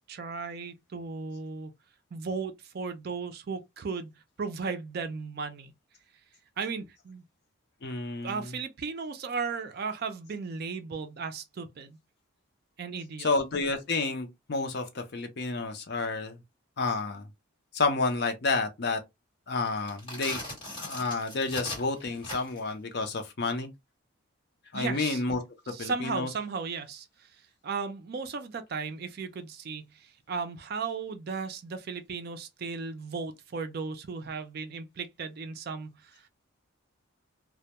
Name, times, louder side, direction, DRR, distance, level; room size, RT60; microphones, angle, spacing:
voice 1, 0.0-1.7 2.1-4.1 4.4-5.7 6.6-7.2 8.2-12.0 12.8-13.3 24.7-25.2 25.7-27.3 27.6-36.3, right 5 dB, 45° right, 0.4 m, -36 dB
voice 2, 7.8-8.4 13.2-16.4 16.8-17.3 17.7-19.0 19.5-20.4 20.8-23.7 24.7-25.4 25.8-26.3, left 3 dB, 50° left, 0.5 m, -30 dB
sound 1, 19.8-22.7, left 1 dB, 25° left, 1.3 m, -39 dB
2.1 x 2.1 x 2.8 m
head